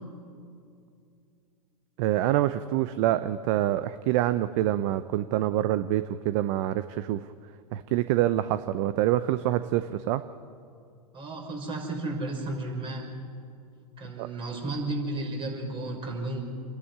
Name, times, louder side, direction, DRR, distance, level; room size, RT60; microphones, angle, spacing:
voice 1, 2.0-7.2 7.7-10.2 14.2-14.3, right 13 dB, 50° right, 13 dB, 0.7 m, -26 dB
voice 2, 11.1-13.1 14.0-16.4, right 2 dB, 25° right, 1 dB, 5.7 m, -33 dB
28.0 x 11.0 x 9.9 m, 2.4 s
hypercardioid pair, 115°, 20 cm